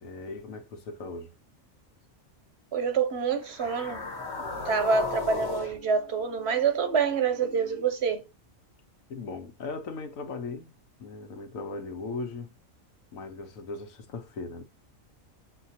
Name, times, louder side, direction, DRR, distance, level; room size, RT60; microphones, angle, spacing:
voice 1, 0.0-1.3 9.1-10.7 11.0-12.5 13.1-14.6, left 3 dB, 80° left, 1.3 m, -38 dB
voice 2, 2.7-4.1 4.6-8.2, right 5 dB, 60° right, 0.8 m, -26 dB
sound 1, 3.4-7.8, left 3 dB, 55° left, 1.3 m, -37 dB
6.4 x 2.4 x 2.7 m
omnidirectional pair, 1.4 m